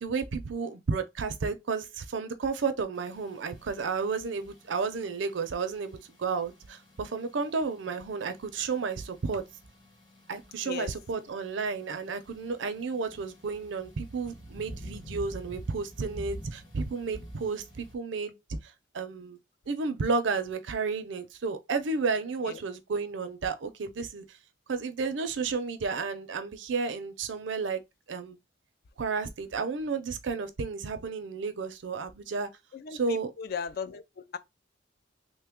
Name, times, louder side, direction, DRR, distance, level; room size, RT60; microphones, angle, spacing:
voice 1, 0.0-9.4 10.3-18.3 18.6-19.4 19.7-24.2 24.7-27.8 28.1-28.4 29.0-32.5 32.9-33.3, right 4 dB, 70° right, 0.5 m, -32 dB
sound 1, 2.9-17.9, right 1 dB, 25° left, 1.1 m, -49 dB
voice 2, 32.7-34.4, left 6 dB, 50° left, 0.3 m, -37 dB
3.1 x 2.2 x 3.5 m
head